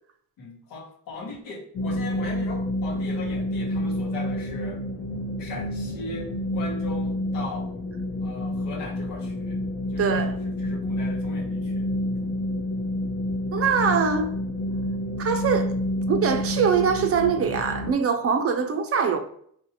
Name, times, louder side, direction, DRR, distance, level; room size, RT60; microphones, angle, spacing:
voice 1, 0.4-4.8 5.4-7.7 8.2-9.6 9.9-10.3 10.6-11.9 12.1-12.3, left 2 dB, 80° left, 1.0 m, -38 dB
sound 1, 1.7-17.9, left 1 dB, 35° left, 0.6 m, -29 dB
voice 2, 10.0-10.3 13.5-14.3 15.2-15.7 16.1-19.2, right 6 dB, 45° right, 0.5 m, -23 dB
3.0 x 2.6 x 2.7 m
supercardioid pair, 70°, 33 cm